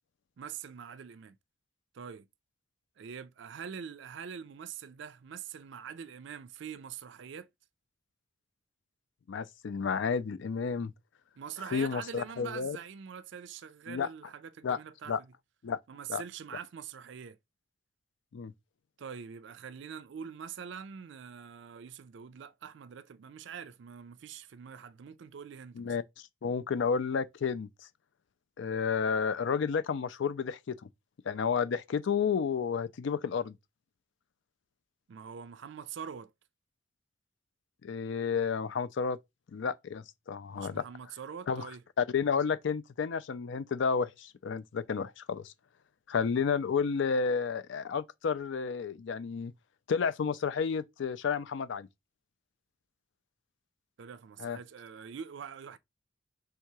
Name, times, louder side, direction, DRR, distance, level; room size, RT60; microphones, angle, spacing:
voice 1, 0.4-1.4 1.9-2.3 3.0-7.5 11.4-15.3 15.9-17.4 19.0-26.0 35.1-36.3 40.5-41.8 54.0-55.8, right 7 dB, 65° right, 0.4 m, -44 dB
voice 2, 9.3-10.9 11.7-12.8 13.9-14.1 14.6-14.8 15.1-15.2 15.6-15.8 16.1-16.2 18.3-18.5 25.8-26.0 26.4-27.7 28.6-30.8 31.3-33.5 37.8-39.2 39.5-40.8 41.5-41.7 42.0-45.5 46.1-49.5 49.9-51.9 54.4-54.6, left 6 dB, 65° left, 0.4 m, -31 dB
3.5 x 2.8 x 4.6 m
head